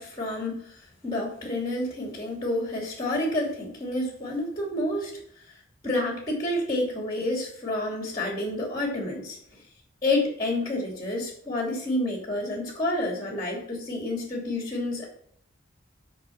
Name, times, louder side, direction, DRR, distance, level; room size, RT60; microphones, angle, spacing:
voice 1, 0.0-5.1 5.8-9.4 10.0-15.1, left 1 dB, 20° left, -1 dB, 2.7 m, -29 dB
10.5 x 5.5 x 5.8 m, 0.65 s
head